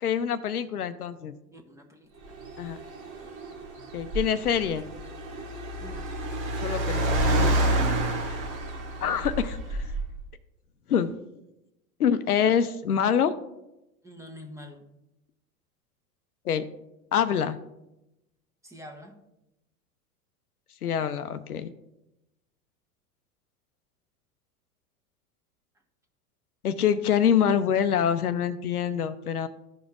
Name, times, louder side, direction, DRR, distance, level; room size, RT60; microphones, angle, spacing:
voice 1, 0.0-1.3 2.6-2.8 3.9-4.9 6.6-7.7 9.0-9.8 10.9-11.1 12.0-13.3 16.4-16.6 17.1-17.6 20.8-21.7 26.6-29.5, left 8 dB, 85° left, 11 dB, 0.6 m, -25 dB
voice 2, 1.5-2.3 5.8-6.0 14.0-14.9 18.6-19.2, left 1 dB, 5° right, 4 dB, 1.1 m, -46 dB
Car, 2.3-10.2, right 1 dB, 65° right, 1.6 m, -29 dB
14.5 x 5.1 x 2.4 m, 0.91 s
hypercardioid pair, 90°, 44 cm